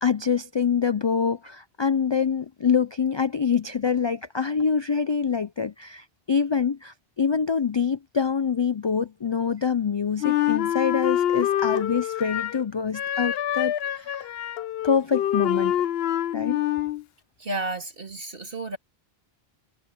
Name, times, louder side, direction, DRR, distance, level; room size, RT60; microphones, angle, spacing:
voice 1, 0.0-14.3 14.8-15.7 16.3-16.6, left 6 dB, 45° left, 0.3 m, -25 dB
Wind instrument woodwind instrument, 10.2-12.6 12.9-17.0, left 11 dB, 80° left, 0.8 m, -26 dB
voice 2, 17.4-18.8, right 2 dB, 60° right, 3.2 m, -32 dB
omnidirectional pair, 1.0 m